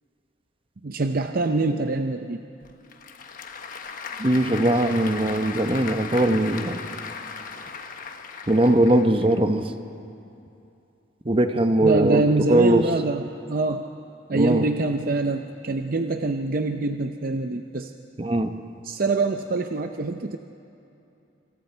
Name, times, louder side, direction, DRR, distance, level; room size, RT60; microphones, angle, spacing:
voice 1, 0.8-2.4 11.8-13.9 14.3-17.9 18.8-20.4, right 3 dB, 50° right, 6 dB, 0.6 m, -25 dB
Applause / Crowd, 2.6-9.4, left 5 dB, 45° left, 1.2 m, -37 dB
voice 2, 4.2-6.8 8.5-9.6 11.2-12.2 12.5-12.8 14.3-14.7 18.2-18.5, right 1 dB, 30° right, 7 dB, 1.0 m, -20 dB
27.0 x 26.5 x 4.5 m, 2.8 s
head